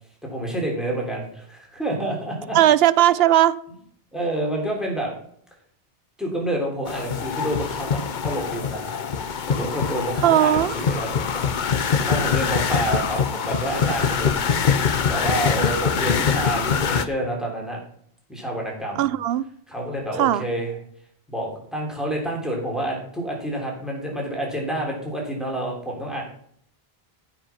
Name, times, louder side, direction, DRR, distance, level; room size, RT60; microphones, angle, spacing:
voice 1, 0.2-2.6 4.1-5.1 6.2-9.0 9.5-11.5 12.1-14.5 15.1-17.8 18.3-19.1 19.7-20.7 21.3-26.2, right 1 dB, ahead, -1 dB, 3.3 m, -28 dB
voice 2, 2.5-3.5 10.2-10.7 19.0-19.4 20.2-20.4, right 12 dB, 75° right, 17 dB, 0.8 m, -17 dB
sound 1, 6.9-17.0, left 6 dB, 55° left, 0.8 m, -24 dB
14.5 x 5.4 x 5.8 m, 0.64 s
omnidirectional pair, 1.0 m